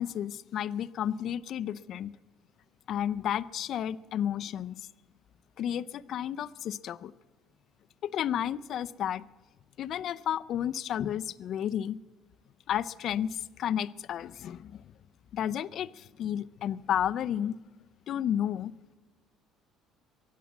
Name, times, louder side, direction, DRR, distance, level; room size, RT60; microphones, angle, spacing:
voice 1, 0.0-2.1 2.9-4.9 5.6-7.1 8.0-9.2 9.8-12.0 12.7-14.8 15.3-17.5 18.1-18.7, left 10 dB, 60° left, 15 dB, 0.5 m, -32 dB
22.5 x 8.4 x 7.2 m, 1.3 s
supercardioid pair, 95°, 0 cm